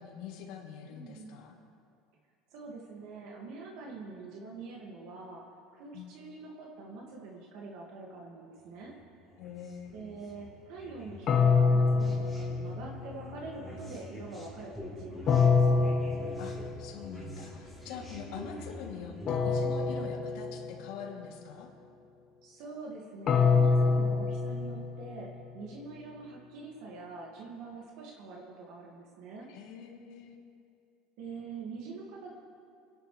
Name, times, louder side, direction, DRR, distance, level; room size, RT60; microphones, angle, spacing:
voice 1, 0.0-1.5 5.9-6.1 9.4-10.0 16.4-21.7 29.5-30.4, left 7 dB, 70° left, -1 dB, 2.6 m, -44 dB
voice 2, 0.9-1.4 2.5-5.4 5.7-8.9 9.9-15.4 15.7-15.9 19.9-20.1 22.4-25.3 25.5-29.5 31.2-32.3, right 3 dB, 60° right, -1 dB, 1.9 m, -45 dB
sound 1, 8.9-19.3, left 1 dB, ahead, 3.7 m, -46 dB
sound 2, 11.3-13.3 15.3-17.1 19.3-21.1 23.3-25.5, left 5 dB, 35° left, 1.1 m, -26 dB
29.5 x 11.0 x 3.2 m, 2.4 s
cardioid pair, 155°, 0 cm